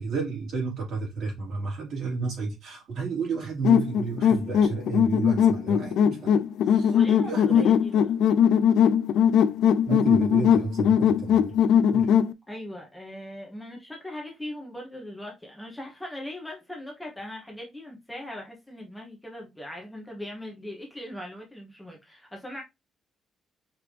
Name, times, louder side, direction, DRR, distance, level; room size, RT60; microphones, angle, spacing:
voice 1, 0.0-6.4 6.7-6.9 7.2-7.7 9.9-11.6 11.9-12.1, right 4 dB, 60° right, 2.8 m, -31 dB
sound 1, 3.6-12.3, left 8 dB, 80° left, 0.4 m, -20 dB
voice 2, 6.9-8.2 12.5-22.6, left 1 dB, 5° left, 1.0 m, -40 dB
5.1 x 2.9 x 3.3 m
cardioid pair, 165°, 0 cm